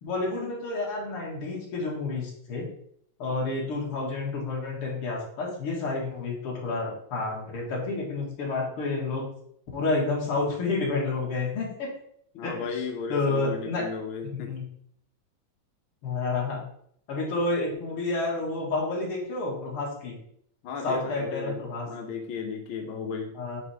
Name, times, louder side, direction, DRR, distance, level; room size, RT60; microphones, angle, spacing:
voice 1, 0.0-2.7 3.2-9.3 9.7-11.9 12.4-12.7 13.1-13.8 14.3-14.6 16.0-16.6 17.1-20.2 20.8-21.9 23.4-23.6, left 3 dB, 45° left, -3 dB, 2.4 m, -29 dB
voice 2, 12.3-14.5 20.6-21.6 21.9-23.3, left 5 dB, 90° left, 2 dB, 1.1 m, -34 dB
9.6 x 4.2 x 3.5 m, 0.68 s
omnidirectional pair, 3.8 m